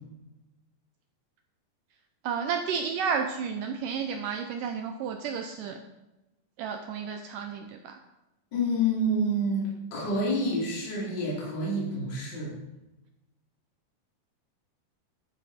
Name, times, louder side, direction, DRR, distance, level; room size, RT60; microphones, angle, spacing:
voice 1, 2.2-5.8 6.6-8.0, right 6 dB, 80° right, 6 dB, 1.9 m, -32 dB
voice 2, 8.5-12.5, equal, 30° left, -5 dB, 3.4 m, -28 dB
11.5 x 9.1 x 4.2 m, 1.0 s
omnidirectional pair, 4.4 m